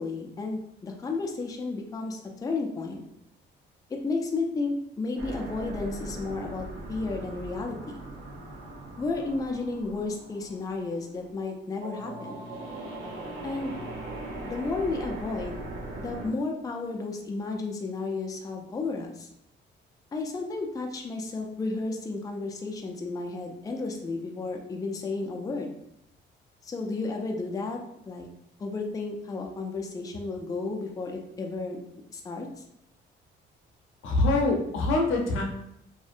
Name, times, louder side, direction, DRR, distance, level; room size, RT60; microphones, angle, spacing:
voice 1, 0.0-3.0 3.9-8.0 9.0-12.4 13.4-13.7 14.4-15.6 16.0-19.3 20.1-25.7 26.6-27.8 28.1-28.3 28.6-31.8 32.1-32.6, left 3 dB, 20° left, 2 dB, 0.3 m, -32 dB
sound 1, 5.2-16.3, right 1 dB, 85° right, 0.7 m, -40 dB
voice 2, 34.0-35.4, left 2 dB, 85° left, 0 dB, 0.6 m, -24 dB
2.6 x 2.1 x 2.4 m, 0.77 s
cardioid pair, 90°, 20 cm